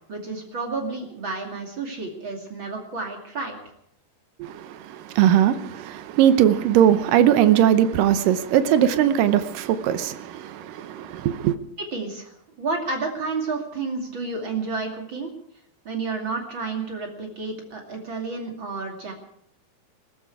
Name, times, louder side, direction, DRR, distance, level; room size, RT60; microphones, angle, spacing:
voice 1, 0.1-3.6 11.9-12.3 12.6-15.3 15.8-19.1, right 4 dB, 35° right, 2.7 m, -30 dB
voice 2, 4.4-11.6, right 10 dB, 75° right, 2.1 m, -20 dB
21.0 x 14.5 x 4.8 m
omnidirectional pair, 4.7 m